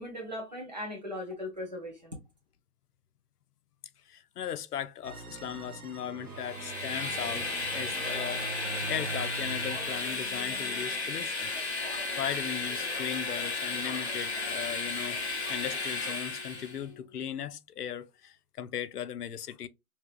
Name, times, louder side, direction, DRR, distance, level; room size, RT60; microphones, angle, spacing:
voice 1, 0.0-2.2, left 1 dB, 30° right, 0.8 m, -38 dB
voice 2, 4.1-8.5 8.8-19.7, left 9 dB, 85° left, 0.5 m, -38 dB
sound 1, 5.0-10.3, right 5 dB, 70° right, 0.8 m, -42 dB
sound 2, 6.1-17.2, left 3 dB, 5° right, 1.1 m, -50 dB
Train, 6.3-16.8, left 3 dB, 45° left, 0.7 m, -34 dB
3.3 x 2.8 x 2.3 m
hypercardioid pair, 170°, 46 cm